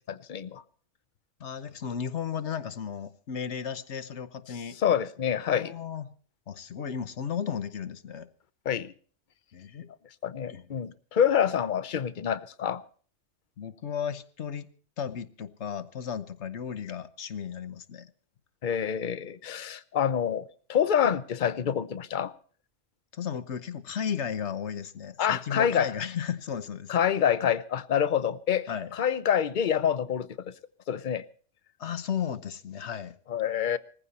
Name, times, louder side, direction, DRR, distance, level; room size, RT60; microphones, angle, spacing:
voice 1, 0.1-0.6 4.8-5.7 8.6-8.9 10.2-12.8 18.6-22.3 25.2-25.9 26.9-30.5 30.9-31.2 33.3-33.8, left 8 dB, 45° left, 0.9 m, -27 dB
voice 2, 1.4-4.8 5.5-6.1 6.5-8.3 9.5-9.9 10.5-10.6 13.6-14.7 15.0-18.1 23.1-26.9 28.7-28.9 31.8-33.2, left 7 dB, 65° left, 1.2 m, -34 dB
20.0 x 15.0 x 4.2 m
omnidirectional pair, 1.3 m